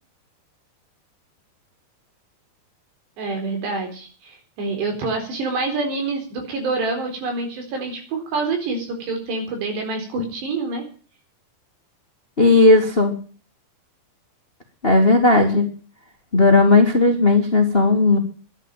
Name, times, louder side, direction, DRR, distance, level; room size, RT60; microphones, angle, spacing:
voice 1, 3.2-10.9, right 3 dB, 70° right, 4 dB, 6.2 m, -27 dB
voice 2, 12.4-13.1 14.8-15.7 16.3-18.2, left 3 dB, 75° left, 4 dB, 0.5 m, -15 dB
11.5 x 11.0 x 8.9 m, 0.41 s
omnidirectional pair, 5.1 m